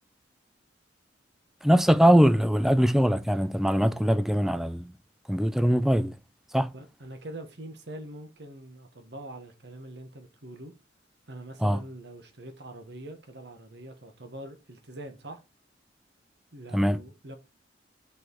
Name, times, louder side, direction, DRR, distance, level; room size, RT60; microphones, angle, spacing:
voice 1, 1.6-4.9 5.3-6.1 6.5-6.7 11.6-11.8 16.7-17.0, equal, ahead, 0.3 m, -22 dB
voice 2, 6.7-10.7 11.3-15.4 16.5-17.4, right 1 dB, 60° right, 1.4 m, -43 dB
6.2 x 4.8 x 4.6 m
head